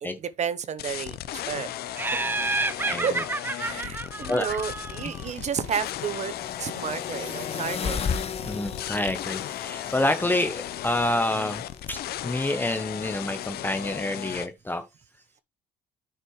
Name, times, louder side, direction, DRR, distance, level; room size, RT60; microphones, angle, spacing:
voice 1, 0.0-1.7 2.1-2.3 3.0-3.2 3.5-8.0, right 7 dB, 45° right, 0.8 m, -32 dB
sound 1, 0.8-14.5, left 13 dB, 70° left, 0.8 m, -36 dB
Laughter, 2.0-5.3, right 3 dB, 10° right, 0.5 m, -30 dB
sound 2, 4.0-14.0, left 6 dB, 35° left, 1.0 m, -37 dB
voice 2, 8.4-11.6 11.9-14.8, left 1 dB, 10° left, 0.9 m, -28 dB
9.2 x 5.7 x 3.2 m
cardioid pair, 110°, 17 cm